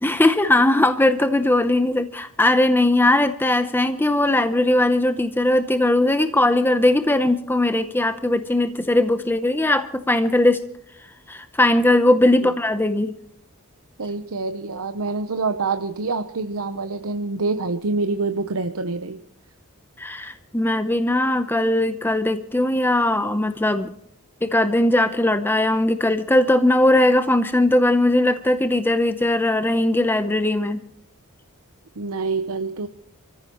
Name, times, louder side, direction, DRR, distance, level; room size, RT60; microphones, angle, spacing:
voice 1, 0.0-10.7 11.3-13.1 20.0-23.9 24.4-30.8, left 1 dB, 10° left, 9 dB, 0.7 m, -19 dB
voice 2, 14.0-19.2 32.0-32.9, right 3 dB, 80° right, 8 dB, 0.9 m, -26 dB
29.5 x 14.5 x 3.0 m, 0.70 s
head